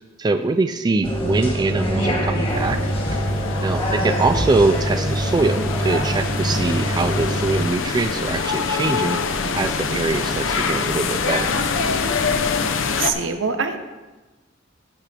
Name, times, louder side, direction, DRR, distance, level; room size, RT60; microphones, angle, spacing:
voice 1, 0.2-2.8 3.6-9.2 9.5-11.5, right 3 dB, 20° right, 7 dB, 0.3 m, -23 dB
sound 1, 1.0-7.7, equal, 30° left, 1.7 m, -24 dB
sound 2, 1.4-12.6, left 2 dB, 50° left, 0.9 m, -38 dB
sound 3, 2.5-13.1, left 5 dB, 80° left, 0.7 m, -25 dB
voice 2, 12.8-13.8, right 5 dB, 70° right, 7 dB, 0.9 m, -24 dB
16.0 x 6.1 x 3.4 m, 1.2 s
head